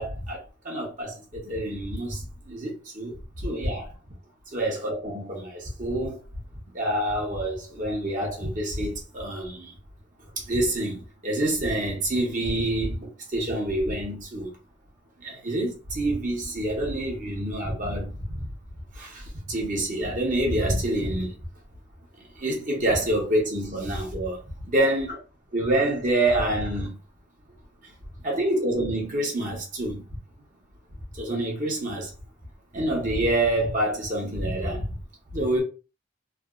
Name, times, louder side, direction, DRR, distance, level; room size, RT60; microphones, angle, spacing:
voice 1, 0.0-3.9 4.5-6.2 6.7-9.7 10.3-14.5 15.2-18.5 18.9-21.4 22.4-24.4 24.7-25.2 25.5-27.0 28.2-30.1 31.1-32.1 32.7-34.9 35.3-35.6, right 1 dB, 40° right, 1.0 m, -27 dB
3.3 x 2.2 x 2.4 m
head